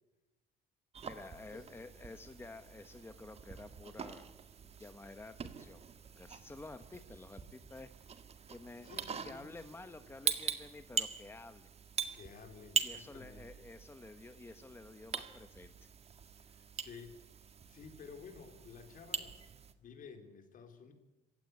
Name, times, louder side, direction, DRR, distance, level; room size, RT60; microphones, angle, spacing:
sound 1, 0.9-19.7, right 6 dB, 40° right, 1.9 m, -43 dB
voice 1, 1.0-4.3 4.8-5.8 6.2-7.9 8.5-8.9 9.2-11.7 12.8-15.9, left 3 dB, 15° left, 9 dB, 1.1 m, -51 dB
voice 2, 8.8-9.5 12.1-13.7 16.4-17.2 17.7-19.5 19.8-20.9, left 5 dB, 55° left, 6 dB, 4.5 m, -53 dB
27.0 x 16.0 x 9.9 m, 1.0 s
cardioid pair, 110°, 17 cm